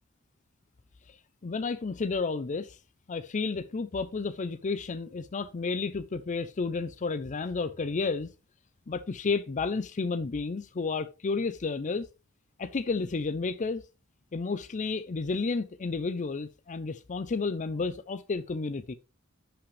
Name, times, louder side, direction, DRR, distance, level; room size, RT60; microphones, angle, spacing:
voice 1, 1.4-2.8 3.1-8.3 8.9-12.1 12.6-13.8 14.3-18.9, left 4 dB, 35° left, 0.5 m, -31 dB
10.5 x 5.8 x 3.2 m
head